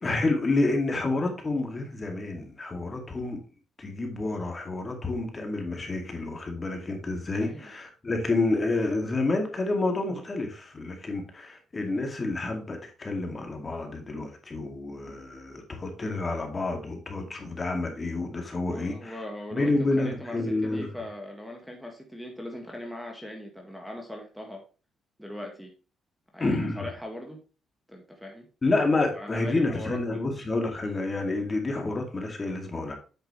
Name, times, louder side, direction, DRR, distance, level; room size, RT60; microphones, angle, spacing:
voice 1, 0.0-3.4 3.8-19.2 19.5-20.9 26.4-26.9 28.6-32.9, left 2 dB, 30° left, 3 dB, 2.3 m, -29 dB
voice 2, 7.4-7.7 18.7-24.6 25.2-25.7 26.3-27.4 27.9-28.5 29.2-30.2, left 1 dB, ahead, 1 dB, 1.8 m, -40 dB
8.5 x 5.9 x 3.1 m, 0.34 s
cardioid pair, 90°, 0 cm